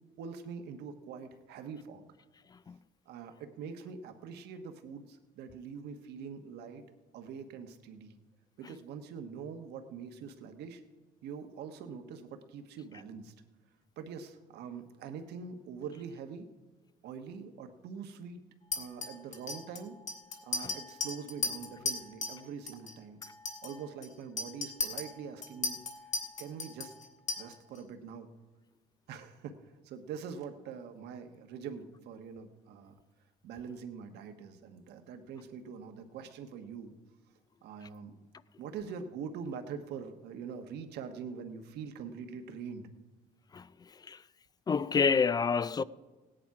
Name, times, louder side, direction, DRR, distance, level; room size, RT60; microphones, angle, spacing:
voice 1, 0.2-2.1 3.1-6.8 7.1-8.1 8.6-10.8 11.2-13.3 14.0-16.5 17.0-18.4 18.8-19.9 20.4-23.2 23.6-25.8 26.4-26.9 27.4-28.3 29.1-29.6 29.8-32.9 33.4-36.9 37.6-38.1 38.6-42.9, right 6 dB, 75° right, 1.2 m, -44 dB
Chink clink, 18.7-22.4 22.7-22.9 23.2-27.8, left 4 dB, 45° left, 2.5 m, -37 dB
voice 2, 44.7-45.8, left 5 dB, 25° left, 0.3 m, -27 dB
16.5 x 10.0 x 4.8 m
cardioid pair, 110°, 17 cm